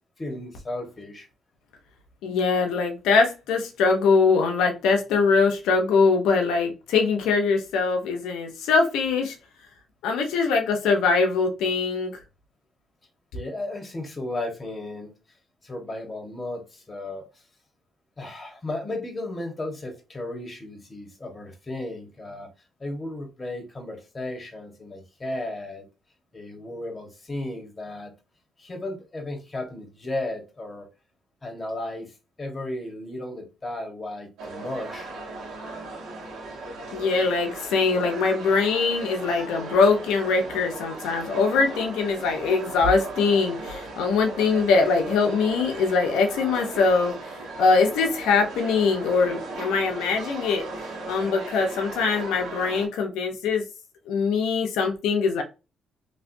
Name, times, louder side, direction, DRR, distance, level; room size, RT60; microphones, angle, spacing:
voice 1, 0.2-1.3 13.3-15.1 15.6-17.4 18.2-22.5 22.8-25.8 26.3-28.1 28.6-30.9 31.4-35.1, left 1 dB, 25° left, 1.4 m, -34 dB
voice 2, 2.2-9.4 10.0-12.1 36.9-47.1 47.6-50.7 51.1-53.6 54.1-55.4, left 4 dB, 90° left, 0.9 m, -22 dB
sound 1, 34.4-52.9, right 3 dB, 85° right, 1.4 m, -37 dB
3.2 x 3.0 x 2.7 m
cardioid pair, 90°, 0 cm